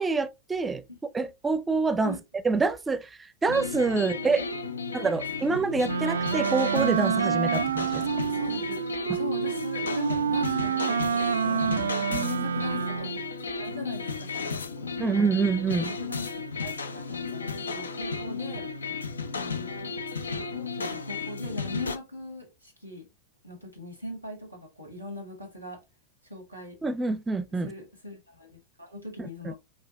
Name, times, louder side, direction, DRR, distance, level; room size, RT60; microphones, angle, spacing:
voice 1, 0.0-0.8 1.1-2.2 2.4-4.5 4.9-8.0 9.1-9.2 12.1-12.5 15.0-16.0 26.8-27.7 29.4-29.5, right 4 dB, 15° right, 0.5 m, -27 dB
voice 2, 0.9-1.3 2.0-2.2 4.0-5.5 8.1-8.8 9.1-12.0 12.2-13.1 13.6-15.1 16.0-16.3 16.6-18.6 19.2-19.7 20.3-23.0 23.4-25.8 26.3-26.8 27.6-28.5 28.8-29.5, left 1 dB, 90° left, 2.0 m, -40 dB
sound 1, 3.5-22.0, left 4 dB, 75° left, 0.5 m, -34 dB
Wind instrument woodwind instrument, 5.8-13.3, right 8 dB, 65° right, 0.3 m, -28 dB
6.2 x 2.4 x 2.4 m
figure-of-eight pair, 90°, 0 cm